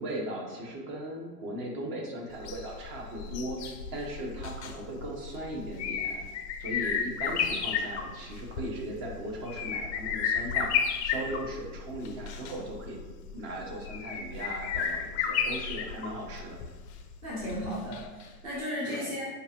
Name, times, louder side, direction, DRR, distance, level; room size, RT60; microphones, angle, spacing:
voice 1, 0.0-6.2 6.6-10.7 11.0-13.0 13.3-16.6 18.9-19.1, right 1 dB, 35° right, 0 dB, 0.8 m, -38 dB
sound 1, 2.3-18.3 18.6-18.7, left 7 dB, 45° left, 0.4 m, -33 dB
voice 2, 17.2-19.3, equal, 10° right, -7 dB, 0.4 m, -35 dB
5.2 x 2.5 x 2.8 m, 1.3 s
hypercardioid pair, 115°, 49 cm